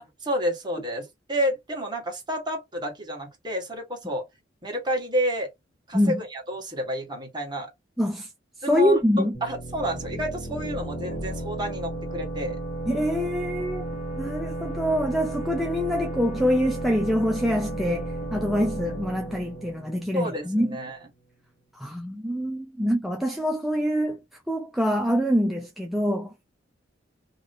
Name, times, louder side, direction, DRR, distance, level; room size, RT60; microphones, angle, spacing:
voice 1, 0.0-4.2 4.6-5.5 5.9-7.7 8.6-9.0 9.4-12.6 20.1-21.0, equal, 25° right, 1.4 m, -30 dB
voice 2, 8.0-8.3 8.7-9.3 12.9-13.9 14.2-20.8 21.7-24.2 24.5-26.3, equal, ahead, 0.4 m, -25 dB
sound 1, 9.3-20.8, right 1 dB, 40° left, 1.3 m, -34 dB
2.9 x 2.8 x 2.7 m
head